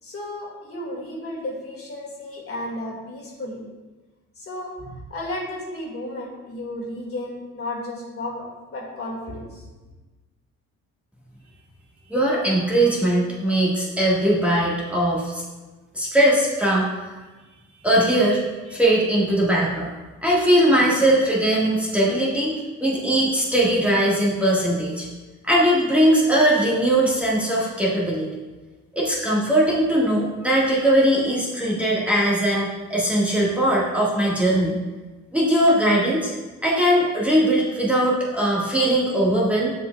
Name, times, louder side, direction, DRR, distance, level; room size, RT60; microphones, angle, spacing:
voice 1, 0.0-3.6 4.4-9.7, left 1 dB, 50° left, -3 dB, 2.0 m, -33 dB
voice 2, 12.1-15.4 15.9-16.9 17.8-19.9 20.2-25.1 25.4-28.3 28.9-34.8 35.3-36.3 36.6-39.7, right 1 dB, 5° right, -7 dB, 1.6 m, -20 dB
7.4 x 7.1 x 2.3 m, 1.2 s
cardioid pair, 90°, 30 cm